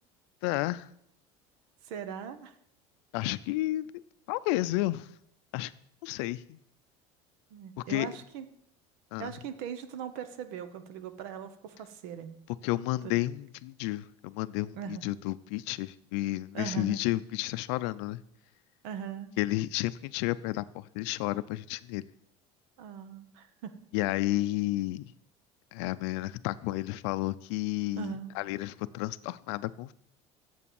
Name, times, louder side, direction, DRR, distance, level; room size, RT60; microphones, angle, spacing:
voice 1, 0.4-0.9 3.1-3.9 4.3-5.1 5.5-5.7 6.0-6.6 7.9-8.1 9.1-9.3 12.6-18.2 19.4-22.0 23.9-25.0 25.7-29.9, left 17 dB, 80° left, 15 dB, 0.5 m, -31 dB
voice 2, 1.8-2.6 7.5-8.5 9.2-12.4 13.0-13.1 14.7-15.1 16.5-17.0 18.8-19.3 22.8-23.7 28.0-28.3, right 8 dB, 70° right, 12 dB, 1.0 m, -40 dB
8.5 x 7.3 x 7.1 m, 0.74 s
cardioid pair, 175°, 14 cm